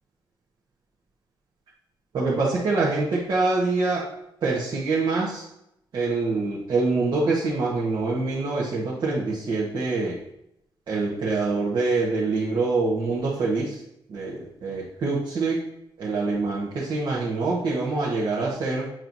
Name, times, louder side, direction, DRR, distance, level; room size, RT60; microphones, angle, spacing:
voice 1, 2.1-4.1 4.4-5.4 5.9-10.2 10.9-13.8 14.1-15.7 16.0-18.9, right 3 dB, 60° right, -5 dB, 1.1 m, -25 dB
7.6 x 6.0 x 2.6 m, 0.80 s
wide cardioid pair, 170°, 9 cm